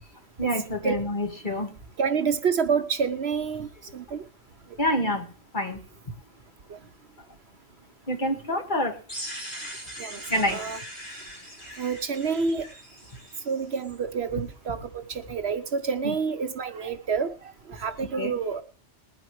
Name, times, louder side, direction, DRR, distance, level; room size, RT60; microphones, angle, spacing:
voice 1, 0.4-1.7 4.8-5.3 5.5-5.8 8.1-9.0 10.3-10.6 18.2-18.4, left 1 dB, 40° left, 2 dB, 2.0 m, -27 dB
voice 2, 2.0-4.2 10.0-10.8 11.8-12.6 13.5-17.3 17.7-18.6, right 6 dB, 60° right, 9 dB, 1.1 m, -28 dB
sound 1, 9.1-13.9, equal, 25° left, 5.6 m, -41 dB
21.0 x 9.3 x 3.2 m, 0.39 s
omnidirectional pair, 1.2 m